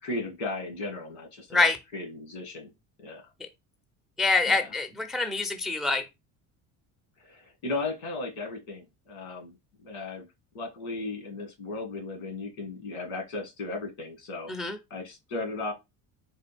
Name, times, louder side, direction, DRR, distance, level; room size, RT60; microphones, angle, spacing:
voice 1, 0.0-2.7 3.0-3.3 4.5-4.7 7.2-9.6 9.8-10.3 10.5-14.5 14.9-15.7, left 2 dB, 80° left, 2.1 m, -36 dB
voice 2, 4.2-6.0 14.5-14.8, left 3 dB, ahead, 0.4 m, -25 dB
4.0 x 2.3 x 3.3 m
supercardioid pair, 85°, 43 cm